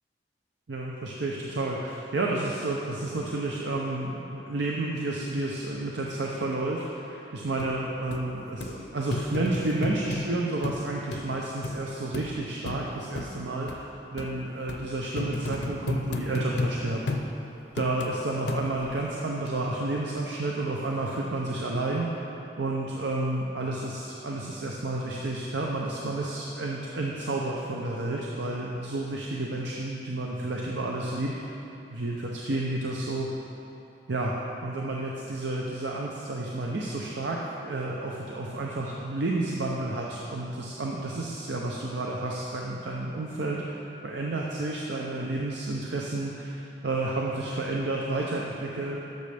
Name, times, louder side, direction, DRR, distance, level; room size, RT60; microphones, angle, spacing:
voice 1, 0.7-13.8 14.1-17.1 17.7-22.1 22.6-31.6 31.9-33.3 34.1-43.8 44.0-49.0, right 2 dB, 85° right, -2 dB, 0.7 m, -31 dB
sound 1, 7.6-7.7 8.1-8.2 8.6-8.7 9.1-10.2 10.6-10.8 11.1-11.2 11.6-11.8 12.1-12.3 12.7-12.8 13.1-13.3 13.7-13.8 14.2-14.3 14.7-14.8 15.2-16.7 17.1-17.3 17.8-18.1 18.5-18.9 19.5-19.6, left 2 dB, 75° left, 0.6 m, -31 dB
11.5 x 6.6 x 3.4 m, 2.9 s
head